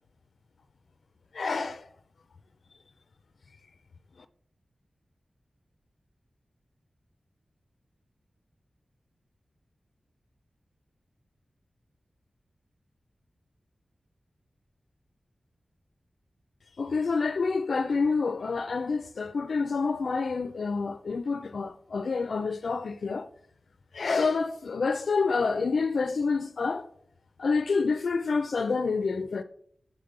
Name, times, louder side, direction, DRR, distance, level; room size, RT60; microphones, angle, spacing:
voice 1, 1.3-1.9 16.8-23.3 23.9-26.9 27.4-29.4, left 4 dB, 85° left, 0.4 m, -28 dB
6.6 x 4.6 x 5.1 m
wide cardioid pair, 110°, 0 cm